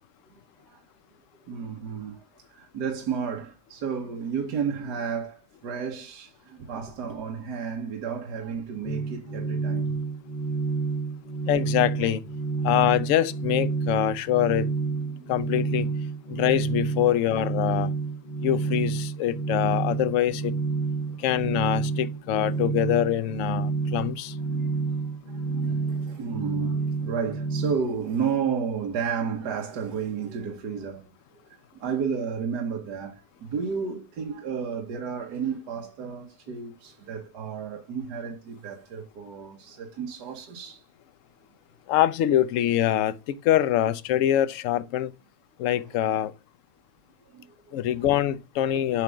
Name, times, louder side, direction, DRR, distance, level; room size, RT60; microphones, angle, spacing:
voice 1, 1.5-2.2 2.5-10.0 15.1-15.3 16.3-16.4 21.1-21.3 24.4-31.1 31.5-40.8 47.3-47.8 48.7-49.0, right 6 dB, 70° right, 1.6 m, -32 dB
sound 1, 8.8-27.7, right 4 dB, 30° left, 1.2 m, -29 dB
voice 2, 11.5-12.2 12.6-14.7 15.3-15.9 16.3-17.9 18.4-20.5 21.2-24.3 41.9-45.1 45.6-46.3 47.7-49.0, left 12 dB, 70° left, 0.7 m, -24 dB
8.2 x 3.5 x 5.1 m
omnidirectional pair, 1.9 m